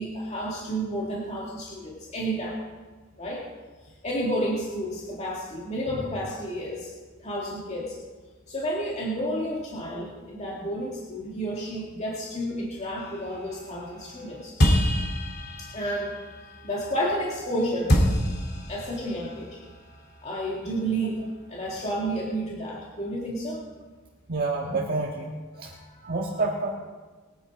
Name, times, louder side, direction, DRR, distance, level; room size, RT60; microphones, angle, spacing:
voice 1, 0.0-2.6 3.2-3.5 4.0-6.9 7.2-7.9 8.5-14.9 15.6-16.2 16.6-17.9 18.7-19.6 20.2-21.2 21.5-23.6 25.6-26.1, right 1 dB, 35° left, -4 dB, 2.1 m, -31 dB
sound 1, 13.0-17.5 17.9-21.3, equal, 50° left, 2.9 m, -28 dB
voice 2, 24.3-25.7 26.0-26.8, right 3 dB, 50° right, -2 dB, 1.6 m, -28 dB
21.5 x 9.8 x 4.8 m, 1.4 s
head